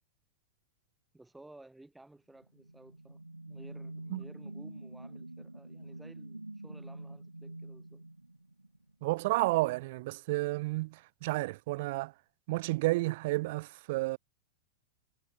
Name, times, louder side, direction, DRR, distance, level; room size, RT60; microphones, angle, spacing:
voice 1, 1.1-8.0, right 2 dB, 5° right, 2.8 m, -56 dB
sound 1, 2.4-8.9, right 2 dB, 85° right, 1.8 m, -46 dB
voice 2, 9.0-11.0 11.2-12.1 12.5-14.2, right 21 dB, 50° right, 0.6 m, -31 dB
figure-of-eight pair, 90°, 0 cm